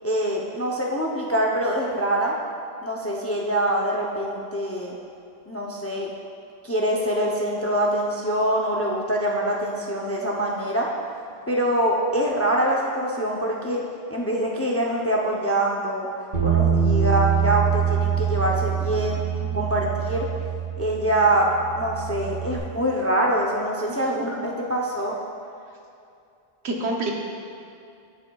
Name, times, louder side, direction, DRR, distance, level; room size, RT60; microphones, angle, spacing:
voice 1, 0.0-2.3 2.8-4.9 5.5-6.1 6.6-10.9 11.5-13.8 14.1-16.1 16.4-19.2 19.5-20.3 20.8-21.5 21.8-25.1, right 1 dB, 20° left, -2 dB, 0.4 m, -24 dB
Bass guitar, 16.3-22.6, right 8 dB, 60° right, 1.8 m, -24 dB
voice 2, 23.9-24.3 26.6-27.1, right 2 dB, 85° right, 0 dB, 1.2 m, -30 dB
11.5 x 6.4 x 2.3 m, 2.5 s
omnidirectional pair, 1.1 m